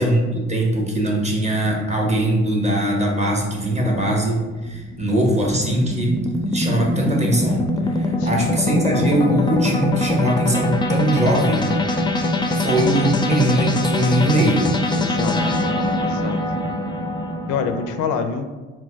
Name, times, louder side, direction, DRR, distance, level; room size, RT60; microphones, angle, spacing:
voice 1, 0.0-6.1 6.4-11.8 12.5-14.6, right 1 dB, 20° right, -1 dB, 1.0 m, -21 dB
sound 1, 3.9-18.2, left 2 dB, 15° left, 0.4 m, -23 dB
voice 2, 8.2-8.5 14.9-15.7 16.0-16.4 17.5-18.5, left 6 dB, 80° left, 7 dB, 0.5 m, -26 dB
4.0 x 2.2 x 4.5 m, 1.3 s
cardioid pair, 90°, 30 cm